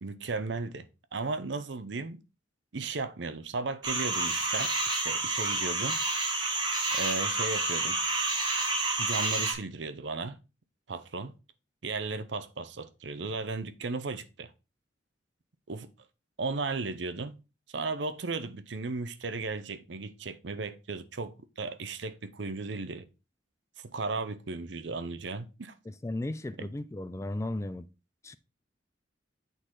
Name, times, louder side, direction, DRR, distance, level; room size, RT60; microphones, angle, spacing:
voice 1, 0.0-2.2 2.7-6.0 6.9-8.0 9.0-10.4 10.9-11.4 11.8-14.5 15.7-15.9 16.4-17.4 17.7-23.0 23.8-25.7 26.6-26.7, right 3 dB, 75° right, 0.7 m, -35 dB
sound 1, 3.8-9.5, right 2 dB, 25° right, 1.7 m, -29 dB
voice 2, 26.0-27.9 28.2-28.4, left 1 dB, 15° left, 0.3 m, -35 dB
9.0 x 4.0 x 3.8 m
head